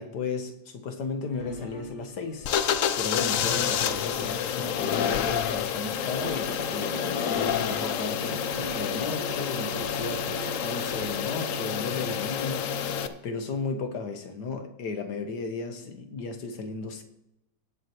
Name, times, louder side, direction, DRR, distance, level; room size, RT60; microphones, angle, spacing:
voice 1, 0.0-2.5 3.0-17.0, left 4 dB, 85° left, 6 dB, 1.8 m, -35 dB
sound 1, 1.3-11.1, right 1 dB, 40° left, 3.4 m, -43 dB
sound 2, 2.4-13.1, left 8 dB, 65° left, 0.9 m, -29 dB
sound 3, 6.2-13.2, left 2 dB, 25° left, 0.7 m, -40 dB
18.0 x 7.8 x 3.0 m, 0.89 s
omnidirectional pair, 1.7 m